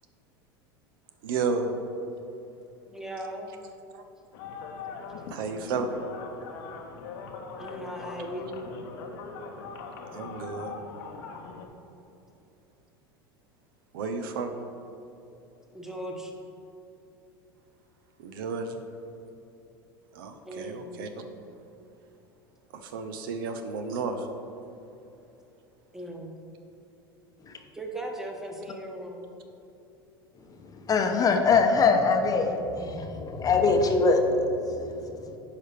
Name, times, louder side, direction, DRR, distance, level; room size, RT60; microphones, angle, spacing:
voice 1, 1.2-1.8 3.9-4.1 5.3-5.9 10.1-10.7 13.9-14.5 18.2-18.8 20.1-21.1 22.7-24.3, right 4 dB, 70° right, 7 dB, 0.6 m, -32 dB
voice 2, 2.9-3.5 7.6-8.5 15.7-16.3 20.4-21.1 25.9-26.3 27.7-29.3, right 1 dB, 5° right, 1 dB, 1.1 m, -38 dB
sound 1, 4.3-11.6, left 5 dB, 65° left, 0.8 m, -41 dB
voice 3, 30.9-35.4, left 4 dB, 30° left, 4 dB, 0.7 m, -23 dB
9.9 x 4.9 x 3.4 m, 2.9 s
hypercardioid pair, 85°, 12 cm